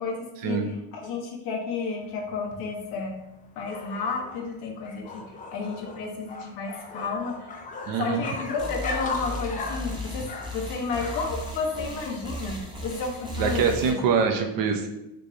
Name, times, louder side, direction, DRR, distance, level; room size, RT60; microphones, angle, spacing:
voice 1, 0.0-3.2 3.6-5.2 5.5-7.5 8.0-10.2 10.5-14.0, left 4 dB, 80° left, 0 dB, 0.9 m, -32 dB
sound 1, 2.0-11.5, left 3 dB, 25° left, 0.3 m, -38 dB
voice 2, 7.9-8.2 13.4-14.9, right 5 dB, 65° right, 5 dB, 0.6 m, -24 dB
sound 2, 8.6-13.9, equal, 15° right, 0.6 m, -36 dB
3.3 x 3.1 x 2.6 m, 0.89 s
cardioid pair, 125°, 37 cm